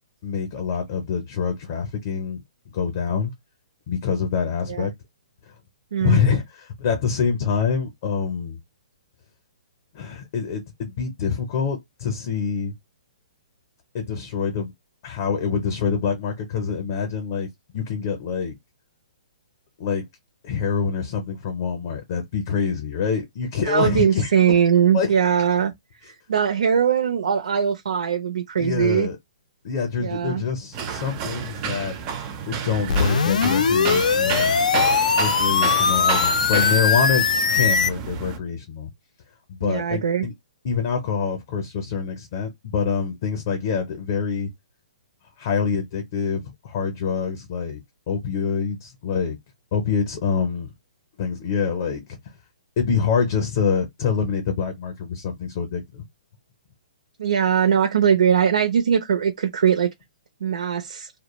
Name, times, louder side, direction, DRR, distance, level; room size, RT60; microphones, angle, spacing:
voice 1, 0.2-3.3 3.9-4.9 6.0-8.6 9.9-12.7 13.9-14.7 15.0-17.5 17.7-18.5 19.8-20.0 20.4-24.5 24.9-25.1 28.6-29.2 29.6-32.0 32.5-34.6 35.2-38.9 39.5-40.3 40.6-44.5 45.4-47.8 48.1-49.4 49.7-50.7 51.2-52.2 52.8-56.0, left 6 dB, 35° left, 0.5 m, -26 dB
voice 2, 23.7-25.7 26.3-29.1 30.0-30.4 39.6-40.3 57.2-59.9 60.4-61.1, right 8 dB, 80° right, 0.5 m, -20 dB
sound 1, 30.7-38.4, right 7 dB, 20° right, 0.3 m, -30 dB
sound 2, 32.9-37.9, left 6 dB, 90° left, 0.4 m, -20 dB
2.2 x 2.0 x 2.9 m
hypercardioid pair, 170°, 4 cm